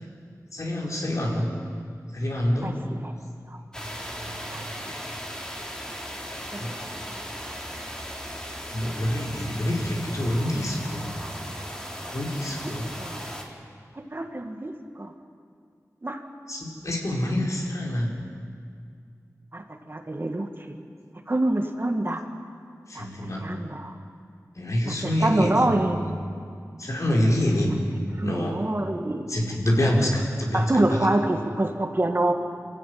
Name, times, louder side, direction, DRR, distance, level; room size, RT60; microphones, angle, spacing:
voice 1, 0.5-1.5 2.1-2.7 4.9-5.2 6.6-6.7 8.7-11.1 12.1-12.9 16.5-18.2 22.9-23.4 24.6-25.7 26.8-27.8 28.2-28.6 29.3-30.7, left 1 dB, 60° left, -2 dB, 4.8 m, -26 dB
voice 2, 2.6-3.1 3.5-3.6 4.5-5.0 6.5-6.6 7.1-7.2 7.5-7.6 12.6-13.2 13.9-15.1 16.0-16.2 19.5-20.8 21.3-22.2 22.9-24.0 24.9-26.1 28.2-29.3 30.5-32.3, right 1 dB, 35° right, 4 dB, 2.0 m, -27 dB
sound 1, 3.7-13.4, equal, 15° left, 3.4 m, -37 dB
26.0 x 15.5 x 9.4 m, 2.3 s
wide cardioid pair, 65°, 6 cm